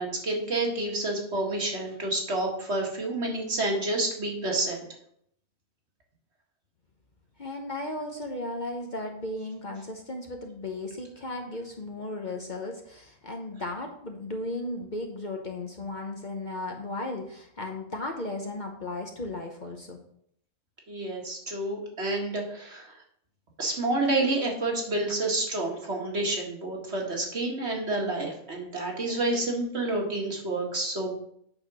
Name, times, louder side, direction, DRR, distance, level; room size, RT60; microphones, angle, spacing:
voice 1, 0.0-4.8 20.9-22.9 23.6-31.1, right 2 dB, 55° right, 0 dB, 2.1 m, -29 dB
voice 2, 7.4-20.0, left 2 dB, 40° left, 2 dB, 0.9 m, -35 dB
8.8 x 4.3 x 6.1 m, 0.69 s
omnidirectional pair, 1.3 m